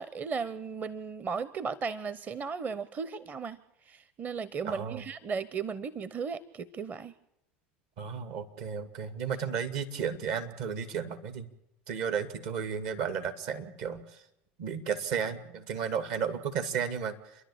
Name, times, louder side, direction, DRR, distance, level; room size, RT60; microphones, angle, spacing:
voice 1, 0.0-3.6 3.9-7.1, right 5 dB, 35° right, 16 dB, 0.9 m, -36 dB
voice 2, 4.6-5.0 8.0-11.5 11.9-14.2 14.6-17.2, right 7 dB, 60° right, 9 dB, 2.1 m, -33 dB
28.5 x 11.5 x 8.7 m, 0.85 s
hypercardioid pair, 85°, 5 cm